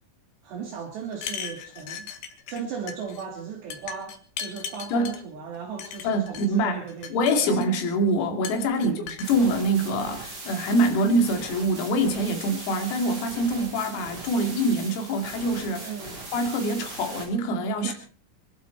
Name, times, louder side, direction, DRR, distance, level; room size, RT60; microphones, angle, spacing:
voice 1, 0.4-2.1 2.5-7.6 8.7-9.1 15.8-16.2 17.8-17.9, right 6 dB, 60° right, 3.7 m, -37 dB
sound 1, 1.1-2.6 2.9-3.2 3.7-5.2 5.8-6.5 6.9-7.9 8.4-9.3, left 7 dB, 65° left, 2.8 m, -37 dB
voice 2, 6.0-6.8 7.1-15.9 16.3-17.9, equal, 80° left, 5.1 m, -25 dB
sound 2, 9.2-17.2, right 3 dB, 30° right, 5.8 m, -40 dB
25.0 x 12.0 x 4.5 m
omnidirectional pair, 6.0 m